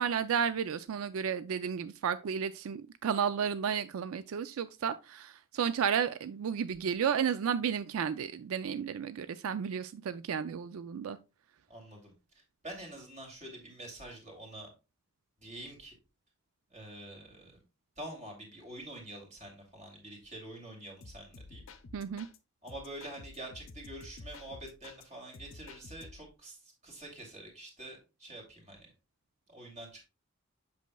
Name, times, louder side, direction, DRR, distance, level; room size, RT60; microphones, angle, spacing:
voice 1, 0.0-11.2 21.9-22.3, right 7 dB, 85° right, 0.4 m, -32 dB
voice 2, 11.7-14.7 15.4-15.9 16.7-17.6 18.0-21.6 22.6-28.9 29.5-30.0, right 1 dB, 35° right, 2.6 m, -46 dB
sound 1, 21.0-22.4 22.7-25.0 25.3-26.3, left 3 dB, 70° left, 0.7 m, -51 dB
8.2 x 6.3 x 2.3 m
head